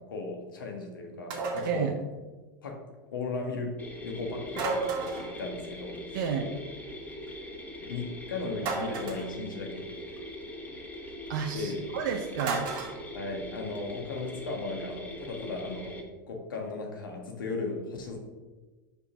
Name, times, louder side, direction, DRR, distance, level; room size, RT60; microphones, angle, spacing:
voice 1, 0.0-1.9 2.6-2.8 3.1-6.2 7.8-10.2 11.5-11.8 13.1-16.0 16.3-18.2, left 3 dB, 80° left, 2 dB, 1.5 m, -36 dB
sound 1, 1.3-1.8 4.5-5.4 8.6-9.3 12.4-13.0, right 4 dB, 45° right, 1.7 m, -32 dB
sound 2, 3.8-16.0, left 1 dB, 15° left, 1.5 m, -42 dB
voice 2, 6.1-6.5 11.3-12.7, right 7 dB, 60° right, 3 dB, 0.7 m, -31 dB
5.2 x 4.9 x 5.7 m, 1.2 s
hypercardioid pair, 90°, 11 cm